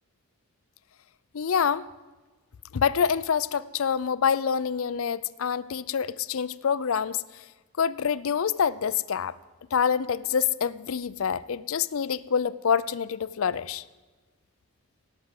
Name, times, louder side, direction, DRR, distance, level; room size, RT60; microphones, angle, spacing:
voice 1, 1.3-1.8 2.7-7.2 7.8-9.3 9.7-13.8, left 7 dB, 70° left, 17 dB, 0.5 m, -26 dB
17.0 x 6.3 x 8.2 m, 1.3 s
head